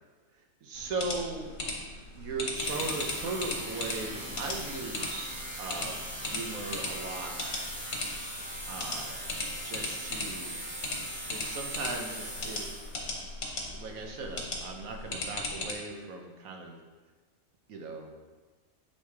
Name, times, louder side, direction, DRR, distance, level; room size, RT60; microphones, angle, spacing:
voice 1, 0.3-1.5 1.8-7.6 8.7-9.2 9.6-10.6 11.3-12.9 13.2-13.3 13.7-16.8 17.7-18.2, right 3 dB, 80° right, 2 dB, 1.3 m, -38 dB
sound 1, 0.8-15.7, left 2 dB, 65° left, 1.5 m, -38 dB
sound 2, 2.5-13.1, right 1 dB, 15° right, 1.0 m, -40 dB
8.2 x 3.4 x 4.7 m, 1.4 s
omnidirectional pair, 1.5 m